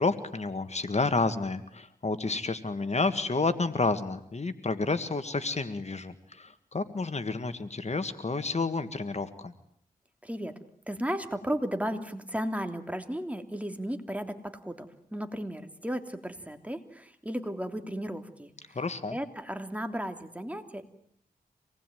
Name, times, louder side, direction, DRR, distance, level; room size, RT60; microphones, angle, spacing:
voice 1, 0.0-9.5 18.8-19.2, left 3 dB, 45° left, 11 dB, 1.8 m, -30 dB
voice 2, 10.2-10.6 10.9-18.8 19.1-20.8, equal, 10° right, 6 dB, 3.1 m, -35 dB
26.0 x 20.0 x 9.3 m, 0.69 s
cardioid pair, 55°, 15 cm